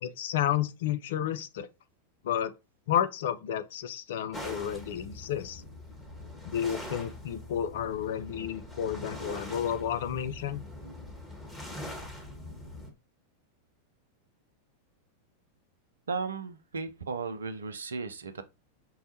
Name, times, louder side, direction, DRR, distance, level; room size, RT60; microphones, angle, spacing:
voice 1, 0.0-1.7 2.2-2.5 2.9-5.6 6.4-10.6, left 10 dB, 55° left, 0.3 m, -31 dB
sound 1, 4.3-12.9, left 1 dB, 10° left, 1.1 m, -43 dB
voice 2, 16.1-18.4, right 4 dB, 70° right, 0.4 m, -35 dB
5.5 x 2.1 x 2.7 m
figure-of-eight pair, 90°, 0 cm